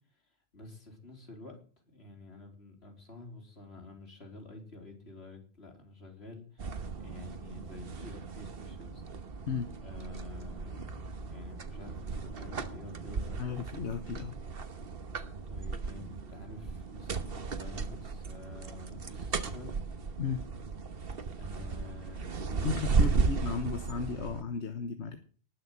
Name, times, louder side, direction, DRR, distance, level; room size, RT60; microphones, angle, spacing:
voice 1, 0.1-1.6 1.9-9.0 9.8-13.6 15.3-19.7 21.3-23.3, left 2 dB, 65° left, 2 dB, 4.1 m, -49 dB
sound 1, 6.6-24.4, right 4 dB, 60° right, 1.4 m, -35 dB
voice 2, 13.4-14.4 20.2-20.4 22.6-25.2, left 5 dB, 85° left, 7 dB, 1.5 m, -34 dB
19.5 x 6.6 x 7.7 m, 0.41 s
omnidirectional pair, 1.1 m